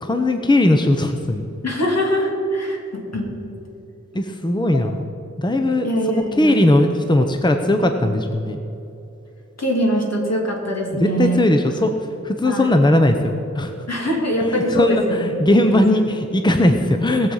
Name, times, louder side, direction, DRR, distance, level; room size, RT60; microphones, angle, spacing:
voice 1, 0.0-1.4 4.1-5.0 5.4-8.6 11.0-11.9 12.2-13.7 14.4-17.3, left 1 dB, 15° left, 5 dB, 0.8 m, -18 dB
voice 2, 1.6-3.3 4.7-4.8 5.8-6.6 9.6-11.5 12.4-12.7 13.9-16.0 16.6-16.7, equal, 60° left, -1 dB, 3.0 m, -23 dB
19.5 x 7.3 x 5.5 m, 2.9 s
wide cardioid pair, 80°, 29 cm